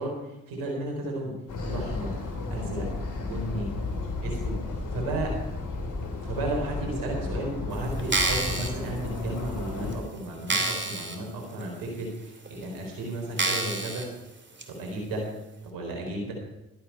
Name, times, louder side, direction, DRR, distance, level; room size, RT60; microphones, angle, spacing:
voice 1, 0.0-1.4 1.6-2.1 2.5-2.9 3.2-3.7 4.2-4.6 4.9-5.4 6.2-14.2 14.7-15.3 15.6-16.3, right 2 dB, 75° right, 1 dB, 4.0 m, -33 dB
sound 1, 1.5-10.0, left 3 dB, 60° left, 3.4 m, -33 dB
sound 2, 8.0-8.7 9.4-9.5 9.9-10.0 10.5-11.2 11.6-11.7 12.5-12.6 13.4-14.1 14.6-14.7, right 2 dB, 35° right, 2.7 m, -27 dB
12.5 x 10.0 x 5.7 m, 0.98 s
hypercardioid pair, 45°, 34 cm